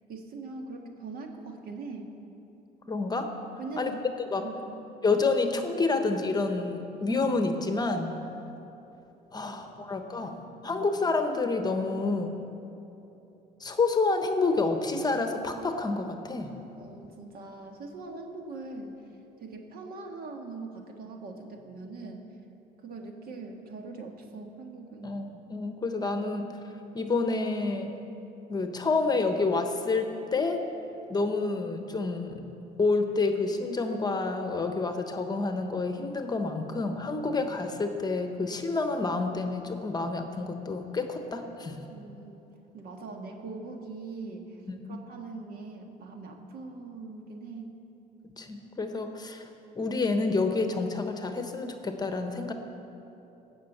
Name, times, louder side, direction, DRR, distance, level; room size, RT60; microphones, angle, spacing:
voice 1, 0.1-2.1 3.6-4.0 4.4-4.8 9.4-9.9 10.2-10.9 16.8-19.1 19.4-22.3 22.8-25.2 41.9-42.3 42.7-44.6 44.9-47.8, right 3 dB, 60° right, 3 dB, 1.7 m, -42 dB
voice 2, 2.9-3.3 3.8-3.9 4.3-4.4 5.0-8.2 9.3-12.4 13.6-16.5 25.0-26.5 26.9-27.9 28.5-30.6 31.1-32.4 32.8-41.8 44.7-45.0 48.2-49.5 49.7-52.5, left 3 dB, 25° left, 6 dB, 1.0 m, -28 dB
16.5 x 6.3 x 7.9 m, 2.9 s
cardioid pair, 110°, 17 cm